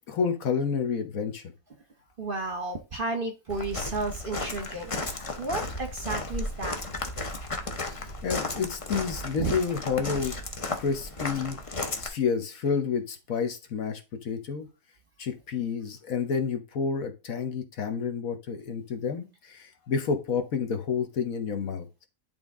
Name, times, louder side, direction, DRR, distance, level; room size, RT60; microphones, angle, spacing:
voice 1, 0.1-1.4 7.8-10.4 10.7-14.7 15.2-22.1, left 6 dB, 60° left, 6 dB, 1.3 m, -30 dB
voice 2, 2.2-6.8 9.4-9.6, right 3 dB, 40° right, 5 dB, 0.9 m, -32 dB
Walk footsteps, 3.5-12.1, left 2 dB, 30° left, 0.6 m, -34 dB
10.5 x 3.6 x 3.6 m, 0.29 s
omnidirectional pair, 1.7 m